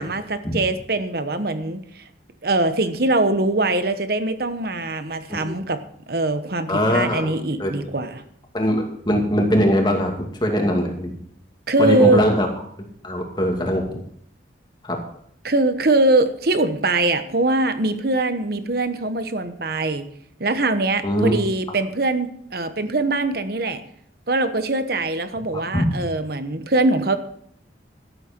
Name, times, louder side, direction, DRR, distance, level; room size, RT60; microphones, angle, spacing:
voice 1, 0.0-1.8 2.4-5.8 6.1-8.2 11.7-12.3 15.4-20.1 20.4-23.8 24.3-27.2, right 2 dB, 55° right, 10 dB, 1.1 m, -22 dB
voice 2, 6.7-7.3 7.6-7.9 8.5-10.1 10.4-11.2 11.8-12.5 13.0-13.8 14.8-15.0 21.0-21.4 25.5-25.9, equal, 25° left, 1 dB, 2.4 m, -21 dB
12.5 x 12.0 x 4.5 m, 0.65 s
head